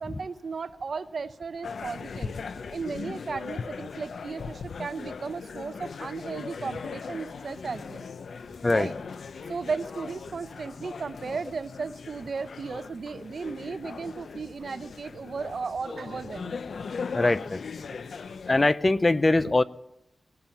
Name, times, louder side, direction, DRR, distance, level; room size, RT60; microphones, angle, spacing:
voice 1, 0.0-2.3 2.7-8.1 8.7-8.9 9.5-16.6, right 5 dB, 60° right, 13 dB, 0.7 m, -35 dB
sound 1, 1.6-18.7, left 5 dB, 70° left, 0.6 m, -39 dB
voice 2, 17.1-17.6 18.5-19.6, left 2 dB, 30° left, 16 dB, 0.6 m, -22 dB
18.5 x 10.5 x 7.2 m, 0.85 s
wide cardioid pair, 85°, 0 cm